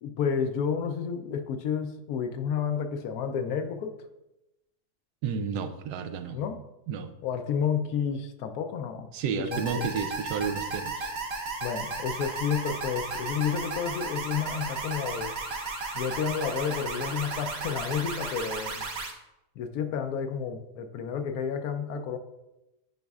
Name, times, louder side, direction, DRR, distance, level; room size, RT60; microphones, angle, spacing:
voice 1, 0.0-4.0 6.3-6.6 7.2-9.1 9.4-9.8 11.6-15.3 15.9-18.8 19.6-22.2, left 7 dB, 75° left, 7 dB, 1.0 m, -30 dB
voice 2, 5.2-6.4 6.9-7.1 9.1-11.1, right 6 dB, 85° right, 9 dB, 1.2 m, -31 dB
sound 1, 9.5-19.1, right 3 dB, 50° right, 0.9 m, -34 dB
9.3 x 5.0 x 2.3 m, 0.93 s
omnidirectional pair, 1.7 m